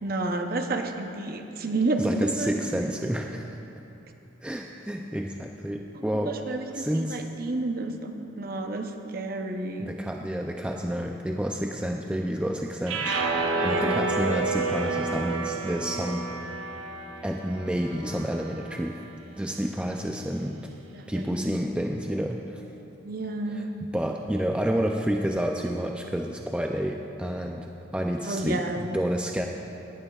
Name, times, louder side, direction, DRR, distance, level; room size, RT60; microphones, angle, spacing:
voice 1, 0.0-2.5 2.8-2.9 6.3-7.9 8.4-10.0 13.5-14.1 20.9-21.6 23.0-23.8 28.2-29.0, right 2 dB, 45° right, 5 dB, 0.7 m, -30 dB
voice 2, 2.0-3.6 4.4-6.4 6.7-7.3 9.8-16.6 17.2-19.0 19.4-20.7 21.1-22.6 23.5-29.5, equal, 5° right, 1 dB, 0.3 m, -30 dB
sound 1, 12.9-19.1, right 3 dB, 85° right, 0.8 m, -30 dB
17.5 x 11.5 x 2.4 m, 2.8 s
head